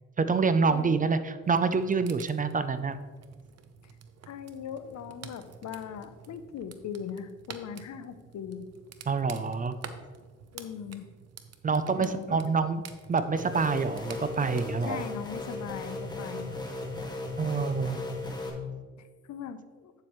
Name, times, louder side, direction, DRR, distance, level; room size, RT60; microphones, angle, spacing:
voice 1, 0.2-3.0 9.1-9.8 11.6-12.8 13.1-15.0 17.4-18.0, right 4 dB, 30° right, 12 dB, 0.5 m, -27 dB
voice 2, 0.7-1.1 4.3-8.7 10.5-11.1 11.9-12.4 14.9-16.6 19.0-19.9, left 8 dB, 65° left, 11 dB, 0.7 m, -40 dB
sound 1, 1.4-14.6, right 7 dB, 55° right, 0.8 m, -49 dB
sound 2, 13.4-18.5, left 2 dB, 15° left, 1.6 m, -36 dB
8.7 x 7.6 x 3.1 m, 1.4 s
cardioid pair, 90°, 30 cm